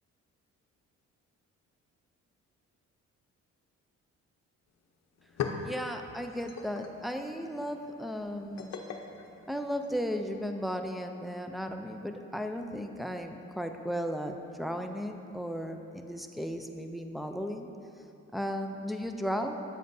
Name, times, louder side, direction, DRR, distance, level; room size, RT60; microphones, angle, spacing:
sound 1, 4.7-4.8 5.1-10.2, left 6 dB, 60° left, 0.7 m, -41 dB
voice 1, 5.6-8.8 9.5-17.7 18.3-19.5, equal, ahead, 4 dB, 0.4 m, -35 dB
8.9 x 7.5 x 2.6 m, 2.7 s
cardioid pair, 90°, 30 cm